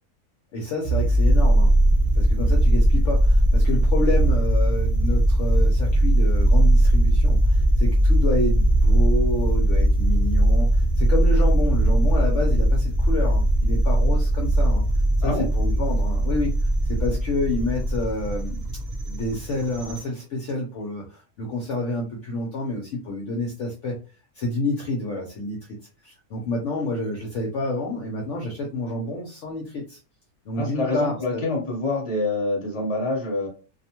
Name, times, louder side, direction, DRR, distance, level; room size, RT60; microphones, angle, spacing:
voice 1, 0.5-1.7 2.1-14.9 15.2-18.6 19.1-24.0 24.3-25.6 26.0-30.0 30.5-31.5, left 2 dB, 65° left, 0 dB, 0.8 m, -29 dB
sound 1, 0.8-20.0, right 1 dB, 55° right, 0.4 m, -19 dB
voice 2, 30.5-33.5, left 2 dB, 25° left, -2 dB, 1.0 m, -26 dB
2.6 x 2.1 x 2.8 m, 0.35 s
omnidirectional pair, 1.5 m